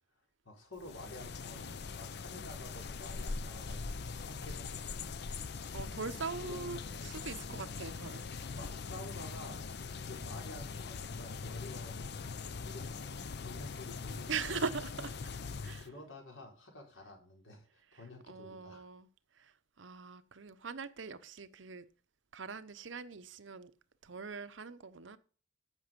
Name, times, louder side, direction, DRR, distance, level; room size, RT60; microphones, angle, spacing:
voice 1, 0.4-5.2 6.4-7.4 8.5-9.7 10.0-12.1 12.6-14.6 15.8-18.9, left 2 dB, 85° left, 4.3 m, -50 dB
sound 1, 0.8-15.9, left 4 dB, 55° left, 0.6 m, -42 dB
voice 2, 5.7-8.3 8.6-8.7 14.3-15.3 15.6-15.9 18.3-19.1 19.4-21.8 22.3-23.7 24.0-25.2, right 5 dB, 70° right, 0.8 m, -41 dB
14.0 x 6.1 x 5.2 m
head